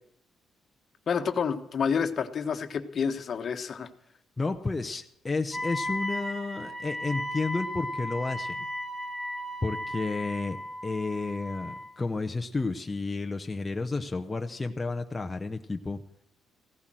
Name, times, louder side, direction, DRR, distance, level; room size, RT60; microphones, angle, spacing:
voice 1, 1.1-3.9, left 6 dB, 50° left, 8 dB, 1.4 m, -29 dB
voice 2, 4.4-8.7 9.6-10.6 10.8-16.0, left 3 dB, 20° left, 4 dB, 0.9 m, -31 dB
Wind instrument woodwind instrument, 5.5-12.0, equal, 5° right, 2.8 m, -35 dB
16.0 x 12.0 x 7.6 m, 0.73 s
cardioid pair, 90°, 0 cm